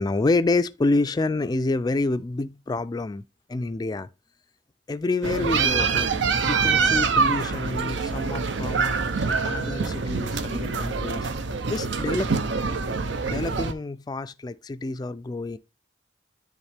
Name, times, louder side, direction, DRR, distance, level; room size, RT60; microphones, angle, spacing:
voice 1, 0.0-3.2 3.5-4.1 4.9-6.1 6.4-11.3 11.7-12.3 13.2-15.6, left 2 dB, 20° left, 0.3 m, -28 dB
sound 1, 5.2-13.7, right 5 dB, 80° right, 0.6 m, -25 dB
9.8 x 3.6 x 3.4 m
head